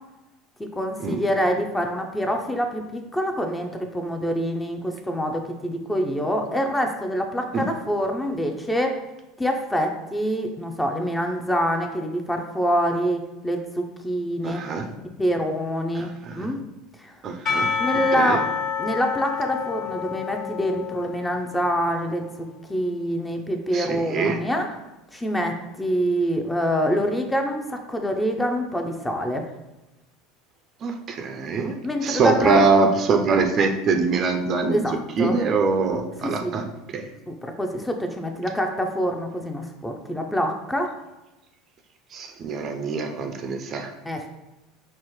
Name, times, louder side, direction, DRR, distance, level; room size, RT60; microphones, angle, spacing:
voice 1, 0.6-9.0 9.4-14.9 15.2-16.6 17.0-17.1 17.8-18.4 18.8-24.7 25.1-29.4 31.8-32.6 34.7-35.4 36.2-36.5 37.3-40.9 44.1-44.3, equal, 10° left, 4 dB, 0.5 m, -26 dB
voice 2, 14.4-14.9 16.0-16.5 17.2-17.7 18.2-18.4 23.7-24.4 30.8-36.6 36.9-37.1 42.1-43.9, right 4 dB, 40° right, 5 dB, 0.4 m, -23 dB
Percussion / Church bell, 17.5-21.9, left 6 dB, 30° left, 1.0 m, -28 dB
5.3 x 2.0 x 3.1 m, 1.0 s
hypercardioid pair, 80°, 0 cm